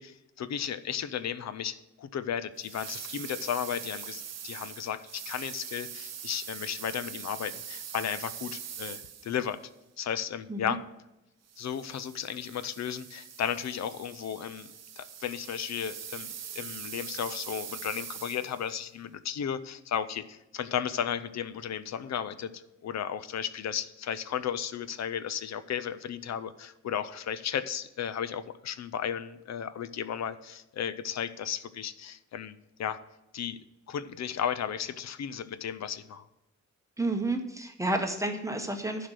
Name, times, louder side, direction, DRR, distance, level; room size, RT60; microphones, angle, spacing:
voice 1, 0.0-9.6 10.0-10.8 11.6-33.0 33.3-33.6 33.9-36.3, left 8 dB, 65° left, 14 dB, 0.6 m, -34 dB
sound 1, 2.6-9.6 11.5-18.7, right 8 dB, 60° right, 0.8 m, -42 dB
voice 2, 37.0-39.1, right 2 dB, 10° right, 4 dB, 0.8 m, -30 dB
11.5 x 5.0 x 6.1 m, 0.93 s
wide cardioid pair, 175°, 29 cm